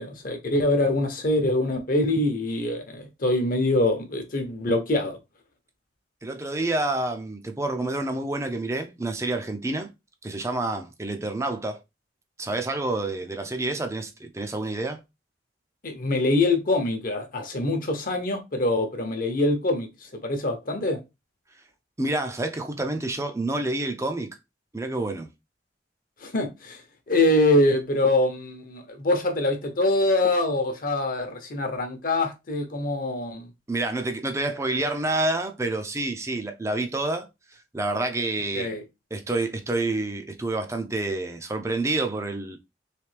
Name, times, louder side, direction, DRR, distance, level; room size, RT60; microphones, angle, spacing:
voice 1, 0.0-5.2 15.8-21.0 26.2-26.8 27.1-33.5 38.5-38.8, left 2 dB, 50° left, 0.9 m, -24 dB
voice 2, 6.2-9.9 10.2-11.8 12.4-15.0 22.0-24.4 24.7-25.3 33.7-37.3 37.7-38.7 39.1-42.6, right 2 dB, 15° right, 0.5 m, -28 dB
3.3 x 3.3 x 3.2 m
head